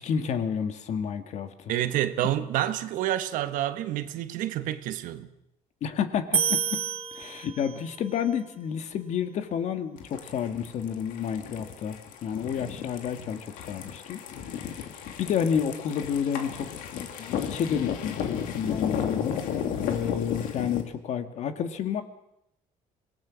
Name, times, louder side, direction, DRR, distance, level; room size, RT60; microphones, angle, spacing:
voice 1, 0.0-1.7 5.8-6.8 7.1-12.0 12.2-14.9 15.2-19.4 19.8-22.0, left 7 dB, 60° left, 1.8 m, -30 dB
voice 2, 1.7-5.3, right 12 dB, 80° right, 1.3 m, -28 dB
sound 1, 6.3-8.0, right 8 dB, 45° right, 0.8 m, -28 dB
sound 2, 10.0-20.8, left 8 dB, 90° left, 2.4 m, -34 dB
25.5 x 18.0 x 6.3 m
cardioid pair, 135°, 14 cm